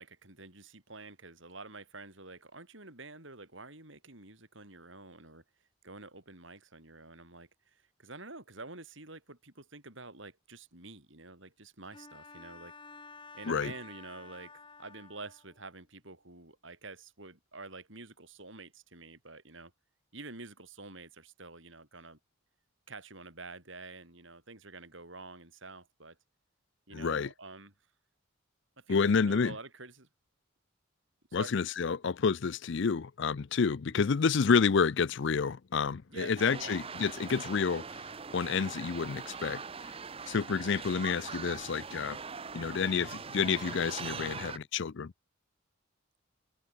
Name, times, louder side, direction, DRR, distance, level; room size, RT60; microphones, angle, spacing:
voice 1, 0.0-5.4 5.8-12.7 13.3-19.7 20.1-22.2 22.9-26.2 26.9-27.7 28.8-30.1 31.3-31.6 33.9-34.1 36.1-36.8, right 3 dB, 60° right, 5.6 m, -48 dB
Bowed string instrument, 11.9-15.6, left 4 dB, 25° left, 3.9 m, -51 dB
voice 2, 26.9-27.3 28.9-29.5 31.3-38.0 38.3-39.6 40.3-42.2 42.5-45.1, left 5 dB, 60° left, 0.5 m, -29 dB
sound 1, 36.4-44.6, right 5 dB, 25° right, 0.7 m, -42 dB
head